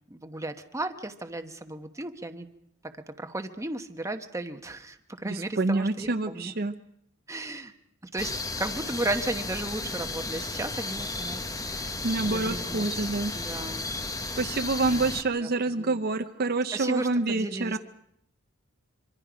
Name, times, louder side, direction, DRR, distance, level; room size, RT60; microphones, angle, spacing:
voice 1, 0.1-2.5 2.8-6.5 7.3-7.7 8.0-11.9 12.2-13.1 13.3-13.9 14.9-15.1 15.4-16.0 16.7-17.8, right 2 dB, 15° right, 7 dB, 1.1 m, -35 dB
voice 2, 5.3-6.7 12.0-13.3 14.4-17.8, right 3 dB, 50° right, 8 dB, 0.8 m, -27 dB
sound 1, 8.2-15.2, left 3 dB, 15° left, 0.9 m, -34 dB
25.5 x 24.5 x 5.1 m, 0.74 s
head